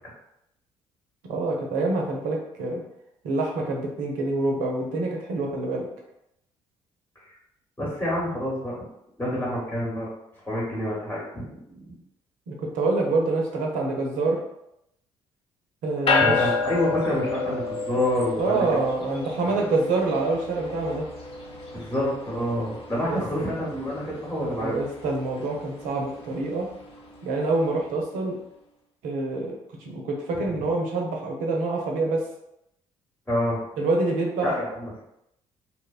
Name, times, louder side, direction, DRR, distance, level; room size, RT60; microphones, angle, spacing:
voice 1, 1.3-2.8 3.2-5.9 12.5-14.4 15.8-16.5 18.4-21.1 23.1-23.2 24.4-26.7 27.2-28.4 29.0-32.2 33.8-34.5, right 3 dB, 65° right, 0 dB, 0.6 m, -26 dB
voice 2, 7.8-8.8 9.2-10.1 10.4-12.0 16.2-18.6 19.5-19.6 21.7-24.8 33.3-33.6 34.4-35.0, left 1 dB, 10° left, -6 dB, 1.0 m, -28 dB
sound 1, 16.1-27.6, left 4 dB, 40° left, 0.7 m, -31 dB
2.9 x 2.1 x 2.4 m, 0.82 s
hypercardioid pair, 50°, 14 cm